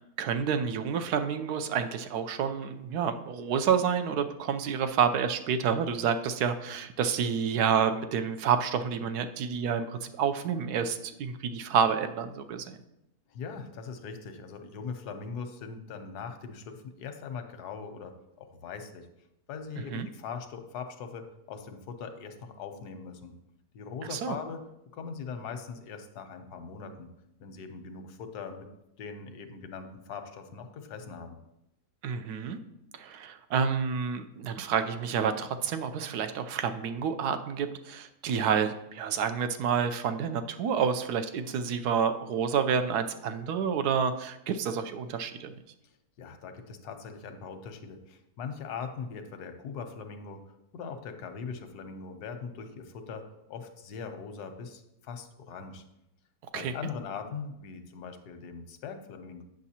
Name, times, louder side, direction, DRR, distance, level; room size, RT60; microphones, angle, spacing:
voice 1, 0.2-12.8 19.9-20.1 24.1-24.4 32.0-32.6 33.0-45.5 56.5-56.7, right 7 dB, 85° right, 9 dB, 1.2 m, -29 dB
voice 2, 13.3-19.1 19.5-23.3 23.7-24.6 24.9-27.1 27.4-28.7 29.0-31.4 46.2-50.4 50.7-55.8 56.5-59.4, left 5 dB, 90° left, 8 dB, 1.3 m, -41 dB
9.1 x 6.6 x 2.8 m, 0.85 s
omnidirectional pair, 1.6 m